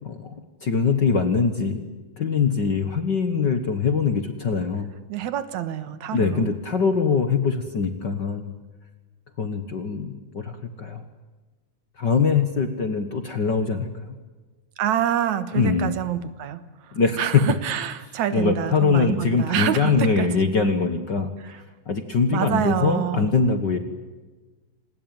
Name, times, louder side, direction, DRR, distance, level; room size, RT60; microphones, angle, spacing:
voice 1, 0.0-1.8 2.2-4.9 6.1-8.5 9.4-11.0 12.0-14.1 15.5-15.9 16.9-17.2 18.3-23.8, left 5 dB, 45° left, 9 dB, 1.6 m, -23 dB
voice 2, 5.1-6.5 14.8-20.3 21.4-21.6 22.3-23.3, right 10 dB, 70° right, 13 dB, 2.6 m, -27 dB
27.0 x 20.0 x 8.9 m, 1.3 s
omnidirectional pair, 3.5 m